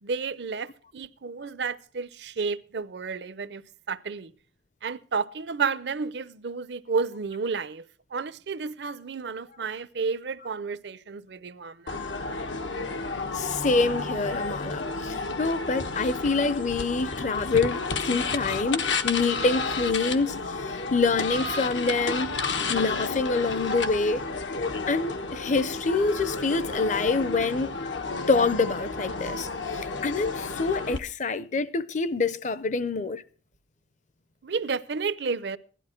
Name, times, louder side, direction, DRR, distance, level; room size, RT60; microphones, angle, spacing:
voice 1, 0.0-3.6 3.9-4.3 4.8-7.8 8.1-12.0 34.4-35.6, right 5 dB, 70° right, 0.6 m, -31 dB
sound 1, 11.9-31.0, left 3 dB, 90° left, 1.2 m, -31 dB
voice 2, 13.3-22.3 22.7-24.2 24.9-27.9 28.3-33.2, left 3 dB, 40° left, 0.6 m, -26 dB
16.5 x 12.0 x 4.4 m
head